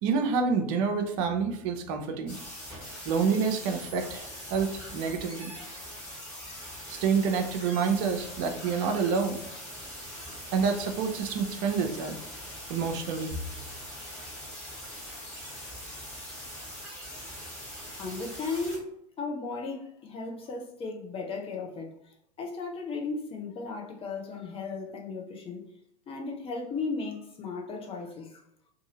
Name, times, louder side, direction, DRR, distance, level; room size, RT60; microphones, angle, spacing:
voice 1, 0.0-2.4 3.1-5.5 6.9-9.4 10.5-12.2 12.7-13.3, right 5 dB, 50° right, 0.6 m, -28 dB
sound 1, 2.3-18.8, equal, 5° left, 1.5 m, -42 dB
voice 2, 18.0-18.9 19.2-25.7 26.1-28.4, left 4 dB, 25° left, 0.8 m, -36 dB
2.7 x 2.7 x 2.9 m
figure-of-eight pair, 80°, 20 cm